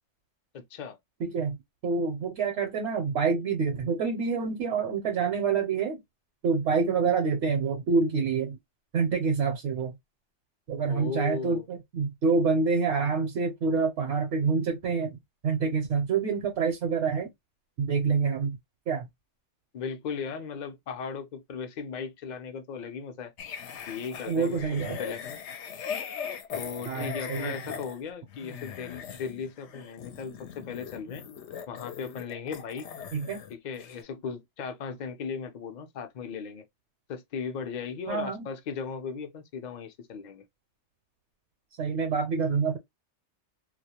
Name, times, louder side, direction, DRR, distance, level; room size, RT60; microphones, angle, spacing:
voice 1, 0.5-1.0 10.9-11.6 19.7-23.3 23.9-24.6 25.0-25.2 26.6-31.2 31.7-32.9 33.5-36.6 37.1-40.4, left 6 dB, 50° left, 0.5 m, -37 dB
voice 2, 1.2-1.6 1.8-6.0 6.4-8.6 8.9-10.0 10.7-15.2 15.4-17.3 17.8-18.6 18.9-19.1 24.3-25.0 26.9-27.8 33.1-33.4 38.1-38.5 41.8-42.8, right 5 dB, 75° right, 0.9 m, -27 dB
sound 1, 23.4-33.5 33.8-34.0, left 7 dB, 75° left, 0.8 m, -40 dB
2.3 x 2.1 x 2.8 m
omnidirectional pair, 1.2 m